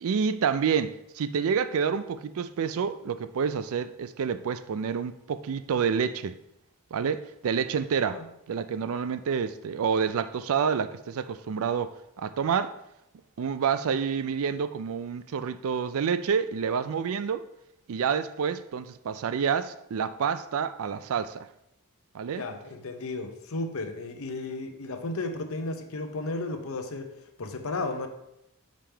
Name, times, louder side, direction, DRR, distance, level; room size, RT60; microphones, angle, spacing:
voice 1, 0.0-6.3 6.9-8.2 8.5-12.8 13.4-17.4 17.9-21.5 22.1-22.4, right 6 dB, 65° right, 0.4 m, -28 dB
voice 2, 22.3-27.1 27.4-28.1, left 2 dB, 65° left, 0.8 m, -34 dB
7.2 x 5.1 x 3.4 m
head